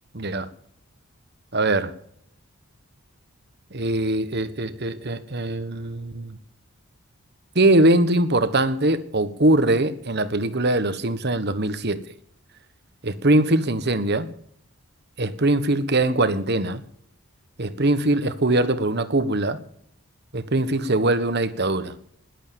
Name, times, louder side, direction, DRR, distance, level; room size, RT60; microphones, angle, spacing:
voice 1, 0.1-0.5 1.5-1.9 3.7-6.4 7.5-12.0 13.0-14.3 15.2-16.8 17.6-19.6 20.3-21.9, right 2 dB, 50° right, 12 dB, 1.4 m, -22 dB
20.5 x 8.4 x 7.0 m, 0.69 s
head